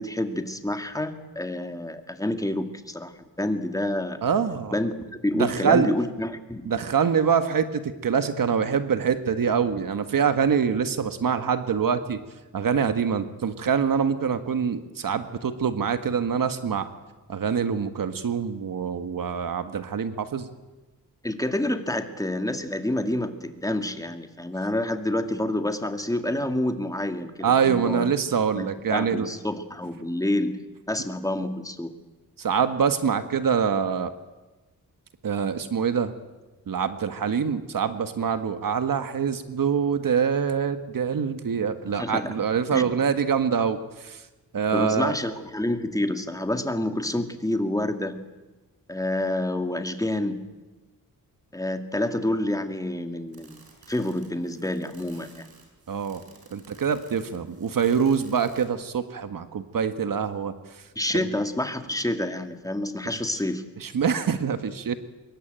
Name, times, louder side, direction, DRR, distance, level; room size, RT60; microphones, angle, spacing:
voice 1, 0.0-3.1 3.4-4.2 4.7-4.9 5.2-6.7 21.2-28.1 28.5-30.5 30.9-31.9 41.9-42.3 42.7-42.9 44.7-48.2 48.9-50.4 51.5-53.6 53.9-55.5 61.0-63.6, left 1 dB, 10° left, 7 dB, 2.1 m, -28 dB
voice 2, 4.2-4.7 5.3-5.9 6.6-12.2 12.5-16.9 17.3-20.5 27.4-29.3 32.4-34.1 35.2-36.1 36.7-44.2 44.5-45.2 55.9-56.2 56.5-60.5 61.1-61.3 63.8-65.0, right 7 dB, 65° right, 9 dB, 1.6 m, -25 dB
sound 1, 53.3-58.8, right 4 dB, 90° right, 6.8 m, -54 dB
25.5 x 22.5 x 9.0 m, 1.1 s
wide cardioid pair, 120°, 36 cm